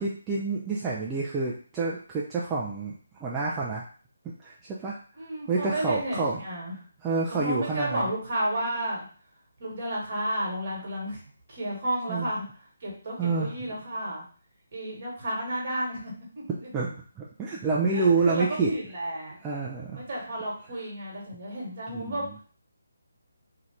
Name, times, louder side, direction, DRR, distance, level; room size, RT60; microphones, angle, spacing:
voice 1, 0.0-2.9 3.2-3.8 4.4-5.0 5.5-6.4 7.0-8.1 12.1-12.3 13.2-13.5 16.7-18.7 19.4-20.1 21.9-22.2, right 4 dB, 15° right, -5 dB, 0.4 m, -28 dB
voice 2, 5.2-6.8 7.3-9.1 9.6-11.2 11.5-12.4 12.8-14.2 14.7-16.7 17.9-19.4 19.9-22.4, right 1 dB, 40° right, -3 dB, 1.3 m, -32 dB
2.7 x 2.4 x 3.2 m, 0.43 s
figure-of-eight pair, 150°, 0 cm